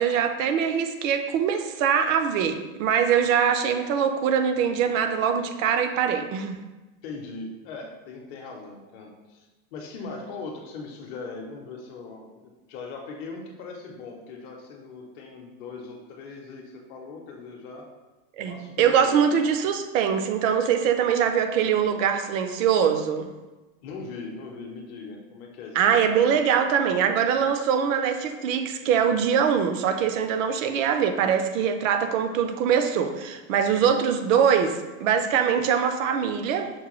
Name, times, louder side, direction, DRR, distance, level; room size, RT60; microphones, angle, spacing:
voice 1, 0.0-6.6 18.4-23.3 25.8-36.7, right 7 dB, 65° right, 8 dB, 0.5 m, -23 dB
voice 2, 7.0-17.8 18.5-19.2 23.8-26.0 33.8-33.9 35.5-35.6, left 4 dB, 45° left, 1 dB, 0.7 m, -40 dB
6.1 x 2.2 x 3.0 m, 1.2 s
supercardioid pair, 155°, 42 cm